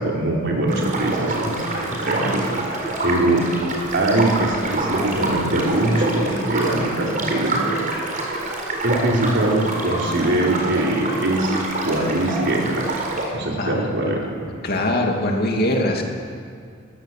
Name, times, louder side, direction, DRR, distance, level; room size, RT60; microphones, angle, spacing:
voice 1, 0.0-2.5 3.0-3.4 3.9-7.7 8.8-11.5 11.8-12.9 13.3-14.2, right 1 dB, 60° right, -1 dB, 4.1 m, -22 dB
sound 1, 0.7-13.3, right 2 dB, 40° right, 4.4 m, -26 dB
voice 2, 13.6-13.9 14.2-14.3 14.6-16.0, left 1 dB, 50° left, 1 dB, 2.6 m, -22 dB
21.0 x 16.5 x 7.6 m, 2.2 s
head